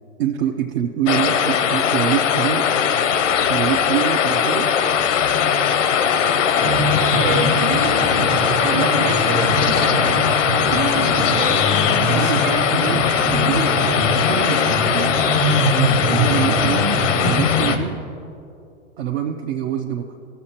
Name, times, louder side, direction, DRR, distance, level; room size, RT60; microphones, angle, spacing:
voice 1, 0.2-2.7 3.5-4.8 11.9-15.1 15.4-16.9 17.2-18.0 19.0-20.1, right 9 dB, 55° right, 3 dB, 0.6 m, -25 dB
sound 1, 1.1-17.8, left 8 dB, 85° left, 0.7 m, -19 dB
voice 2, 6.1-6.4 7.1-7.9 8.6-10.1 10.7-11.7 12.1-12.7, right 4 dB, 30° right, 5 dB, 1.1 m, -28 dB
sound 2, 6.6-17.8, equal, 85° right, 1.4 m, -23 dB
15.0 x 6.7 x 2.9 m, 2.6 s
hypercardioid pair, 110°, 36 cm